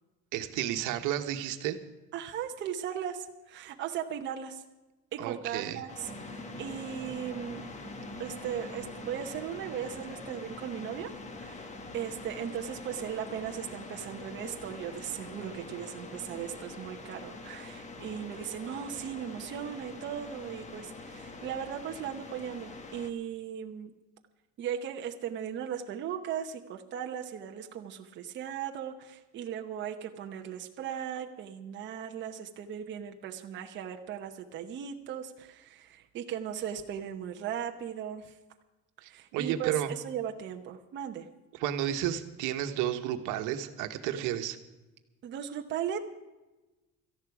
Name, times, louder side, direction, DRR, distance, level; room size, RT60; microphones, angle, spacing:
voice 1, 0.3-1.8 5.2-5.8 39.0-39.9 41.5-44.6, right 11 dB, 75° right, 7 dB, 1.4 m, -32 dB
voice 2, 2.1-4.6 5.1-7.7 8.2-23.9 24.6-38.3 39.0-41.3 44.2-44.5 45.2-46.0, right 9 dB, 35° right, 3 dB, 0.9 m, -37 dB
sound 1, 5.9-23.1, left 3 dB, 20° left, 1.1 m, -45 dB
sound 2, 6.1-18.9, right 2 dB, 15° right, 2.2 m, -51 dB
18.0 x 14.0 x 4.8 m, 1.1 s
cardioid pair, 180°, 31 cm